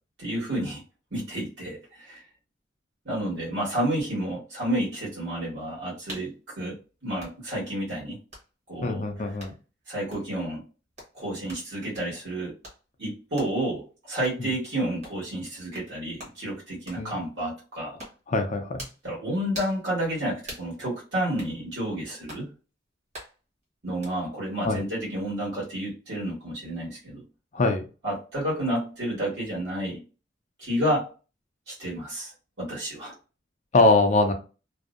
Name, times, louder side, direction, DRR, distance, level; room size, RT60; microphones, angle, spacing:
voice 1, 0.2-0.8 1.1-2.2 3.0-6.3 6.6-6.7 7.0-8.2 8.7-9.1 9.9-10.6 11.1-12.5 13.0-18.0 19.0-22.5 23.8-27.2 28.0-30.0 30.6-31.1 31.7-32.3 32.6-33.1, right 1 dB, 65° right, -6 dB, 1.3 m, -30 dB
sound 1, 6.1-6.3 7.2-7.4 8.3-8.5 9.4-9.6 10.1-10.3 11.0-11.1 11.5-11.7 11.9-12.1 12.6-12.8 13.4-13.6 14.2-14.4 15.0-15.2 15.7-15.9 16.2-16.4 16.9-17.1 18.0-18.2 18.8-19.0 19.5-19.8 20.4-20.7 21.4-21.5 22.3-22.5 23.1-23.4 24.0-24.1, right 1 dB, 40° right, 1.1 m, -42 dB
voice 2, 8.8-9.5 14.4-14.5 17.0-17.2 18.3-18.7 24.6-24.8 27.5-27.8 33.7-34.3, left 2 dB, 40° left, 5 dB, 0.4 m, -22 dB
2.6 x 2.0 x 2.4 m, 0.34 s
head